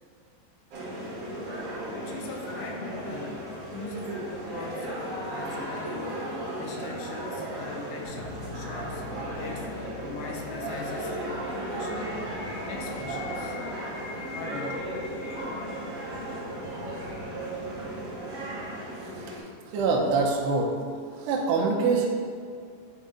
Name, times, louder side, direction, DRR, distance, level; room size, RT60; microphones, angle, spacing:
sound 1, 0.7-19.4, right 1 dB, 55° right, 1.8 m, -35 dB
voice 1, 1.9-5.0 5.3-6.3 6.6-9.7 10.0-12.2 12.7-13.6 14.3-15.0, left 3 dB, 85° left, 1 dB, 2.9 m, -41 dB
sound 2, 8.0-18.8, left 3 dB, 70° left, 1.6 m, -48 dB
sound 3, 9.7-17.7, left 5 dB, 45° left, 2.2 m, -47 dB
voice 2, 19.0-20.8 21.1-22.1, right 4 dB, 80° right, -2 dB, 2.8 m, -26 dB
10.0 x 4.3 x 3.7 m, 2.2 s
omnidirectional pair, 5.2 m